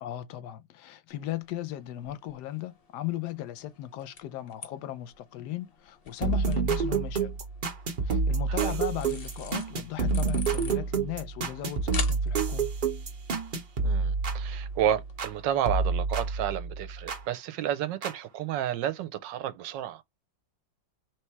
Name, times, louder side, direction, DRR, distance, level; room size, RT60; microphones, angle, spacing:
voice 1, 0.0-7.3 8.0-12.7, left 13 dB, 70° left, 1.0 m, -37 dB
sound 1, 1.1-15.2, left 5 dB, 50° left, 0.7 m, -46 dB
sound 2, 6.2-15.4 15.7-17.2 18.0-18.1, right 4 dB, 55° right, 0.5 m, -29 dB
voice 2, 8.5-8.8 13.8-20.1, right 10 dB, 75° right, 1.2 m, -31 dB
3.2 x 3.2 x 4.5 m
omnidirectional pair, 2.1 m